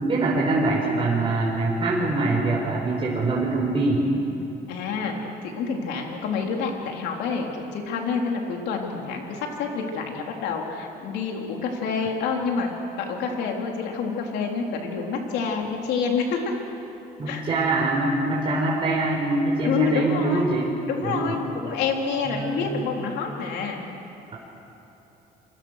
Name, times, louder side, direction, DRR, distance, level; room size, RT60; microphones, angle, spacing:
voice 1, 0.0-4.1 17.2-20.7 21.0-21.3 22.2-23.0, right 2 dB, 30° right, -3 dB, 4.2 m, -24 dB
voice 2, 4.7-5.2 5.4-16.4 17.3-17.4 19.6-20.5 20.9-23.8, left 5 dB, 85° left, 1 dB, 3.6 m, -28 dB
28.5 x 24.0 x 6.5 m, 3.0 s
cardioid pair, 110°, 17 cm